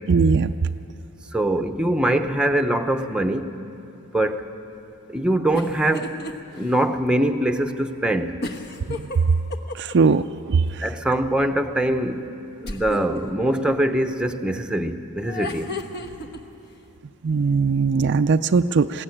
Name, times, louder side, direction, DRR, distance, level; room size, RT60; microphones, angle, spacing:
voice 1, 0.1-0.5 9.0-9.1 9.7-10.8 17.2-19.0, right 4 dB, 50° right, 9 dB, 0.4 m, -20 dB
voice 2, 1.3-3.5 4.1-4.4 5.1-6.1 6.5-8.4 10.8-12.3 12.6-15.7, right 1 dB, 5° right, 6 dB, 0.8 m, -23 dB
sound 1, 5.5-6.3 6.7-6.8 8.4-10.1 12.6-13.2 15.2-16.4, left 2 dB, 45° left, 1.2 m, -32 dB
21.5 x 16.5 x 9.9 m, 2.8 s
head